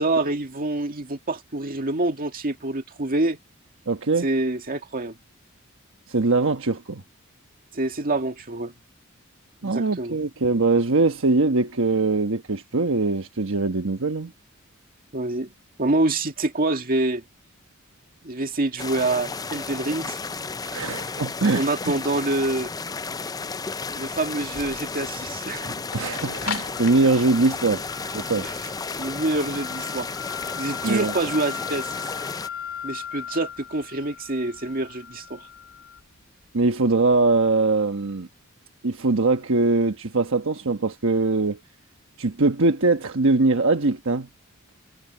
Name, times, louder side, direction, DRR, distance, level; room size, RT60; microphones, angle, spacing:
voice 1, 0.0-3.4 4.2-5.2 7.7-8.7 9.6-10.2 15.1-15.5 15.8-17.2 18.2-20.2 21.5-22.7 23.9-25.8 28.4-28.5 29.0-30.1 30.6-32.1 32.8-35.4, right 2 dB, 45° right, 2.0 m, -26 dB
voice 2, 3.9-4.3 6.1-7.0 9.6-14.3 20.6-21.9 25.9-27.8 28.1-28.5 30.8-31.1 36.5-38.3 38.8-41.6 42.2-44.3, right 3 dB, 65° right, 1.2 m, -22 dB
sound 1, 18.8-32.5, left 4 dB, 15° left, 0.5 m, -33 dB
sound 2, 23.5-37.6, left 8 dB, 70° left, 2.4 m, -38 dB
head